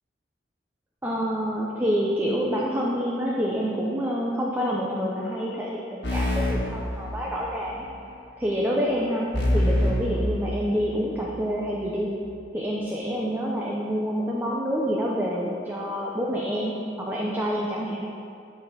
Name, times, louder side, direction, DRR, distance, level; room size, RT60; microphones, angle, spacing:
voice 1, 1.0-7.9 8.4-9.3 9.5-12.1 12.5-18.1, equal, 10° right, -4 dB, 0.8 m, -27 dB
sound 1, 6.0-7.6 9.3-11.1, left 1 dB, 65° left, 2.2 m, -26 dB
12.5 x 4.4 x 7.1 m, 2.6 s
head